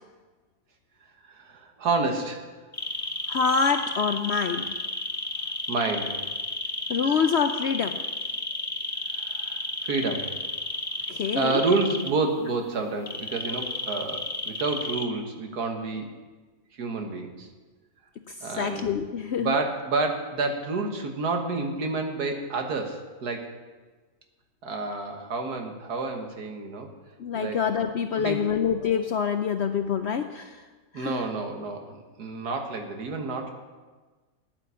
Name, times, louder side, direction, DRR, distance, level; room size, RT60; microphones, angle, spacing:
voice 1, 1.3-2.5 5.7-6.2 7.0-7.2 9.1-10.3 11.4-16.1 16.7-17.5 18.4-18.9 19.4-23.5 24.6-26.9 27.3-27.6 28.2-28.5 30.9-33.5, right 3 dB, 80° right, 4 dB, 1.9 m, -29 dB
sound 1, 2.7-12.1 13.1-15.1, left 2 dB, 15° left, 0.6 m, -32 dB
voice 2, 3.3-4.7 6.9-8.0 11.1-11.6 18.3-19.6 27.2-30.6 30.9-31.2, left 6 dB, 65° left, 7 dB, 0.6 m, -26 dB
9.9 x 9.3 x 6.9 m, 1.3 s
omnidirectional pair, 1.6 m